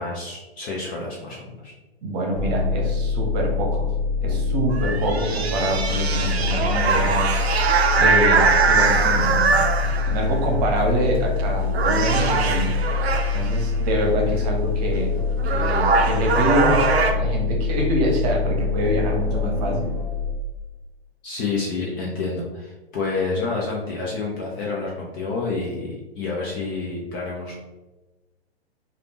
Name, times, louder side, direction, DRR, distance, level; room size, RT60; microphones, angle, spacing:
voice 1, 0.0-1.7 14.4-14.5 21.2-27.6, left 3 dB, 20° left, -3 dB, 0.3 m, -29 dB
voice 2, 2.0-3.9 4.2-7.4 8.0-12.8 13.3-15.1 15.4-20.0, right 1 dB, 40° right, 1 dB, 0.9 m, -25 dB
sound 1, 2.3-20.3, left 4 dB, 60° left, 1.2 m, -25 dB
sound 2, 4.7-10.3 11.1-11.4 11.7-13.6 15.0-15.1 15.4-17.1, right 5 dB, 80° right, 0.5 m, -21 dB
3.2 x 2.5 x 2.8 m, 1.1 s
figure-of-eight pair, 110°, 31 cm